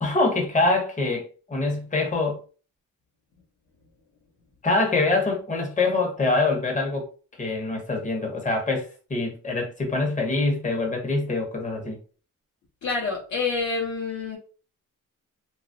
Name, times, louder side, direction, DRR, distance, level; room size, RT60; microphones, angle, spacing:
voice 1, 0.0-2.4 4.6-7.1 7.4-12.0, left 3 dB, 25° left, 1 dB, 0.8 m, -24 dB
voice 2, 12.8-14.4, left 4 dB, 65° left, -3 dB, 0.8 m, -27 dB
2.9 x 2.3 x 2.5 m, 0.37 s
wide cardioid pair, 140°, 32 cm